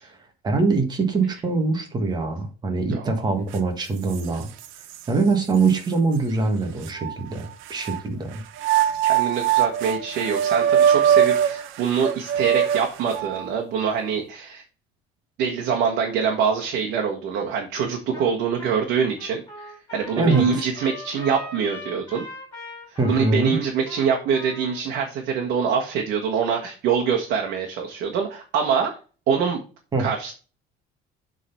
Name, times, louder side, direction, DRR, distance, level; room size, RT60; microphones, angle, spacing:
voice 1, 0.4-4.5 5.1-8.4 20.2-20.6 23.0-23.6 29.9-30.1, right 3 dB, 20° right, 5 dB, 1.5 m, -23 dB
sound 1, 3.5-3.6 4.1-5.0 5.7-5.8 6.8-8.0 8.6-13.5, right 9 dB, 75° right, 0.9 m, -22 dB
voice 2, 9.0-14.6 15.4-22.2 22.9-29.0 29.3-29.6 30.0-30.3, right 6 dB, 60° right, 1 dB, 1.5 m, -24 dB
Trumpet, 18.1-18.3 18.6-24.8, left 1 dB, 15° left, 4.3 m, -40 dB
7.3 x 3.9 x 5.8 m, 0.36 s
cardioid pair, 180°, 20 cm